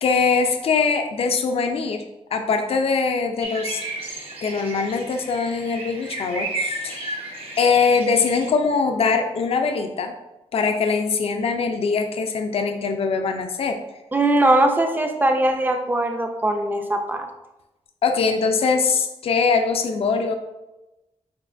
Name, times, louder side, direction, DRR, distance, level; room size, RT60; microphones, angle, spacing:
voice 1, 0.0-2.0 2.3-3.8 4.4-7.2 7.6-10.1 10.5-13.8 18.0-20.4, left 5 dB, 60° left, 5 dB, 0.4 m, -22 dB
sound 1, 3.4-8.5, right 2 dB, 55° right, 1.0 m, -33 dB
voice 2, 14.1-17.2, right 1 dB, 15° right, 4 dB, 0.4 m, -20 dB
6.2 x 2.9 x 2.5 m, 1.0 s
wide cardioid pair, 160°, 11 cm